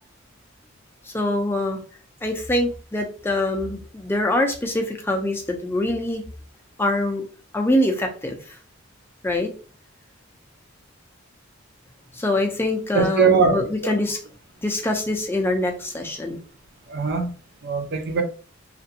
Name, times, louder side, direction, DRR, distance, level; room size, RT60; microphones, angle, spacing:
voice 1, 1.1-1.8 2.2-6.2 6.8-7.2 7.5-8.4 9.2-9.5 12.2-14.2 14.6-16.4, left 1 dB, 10° left, 0.4 m, -24 dB
voice 2, 12.9-13.9 16.9-17.3 17.6-18.2, right 5 dB, 50° right, 0.4 m, -21 dB
2.5 x 2.2 x 2.6 m
head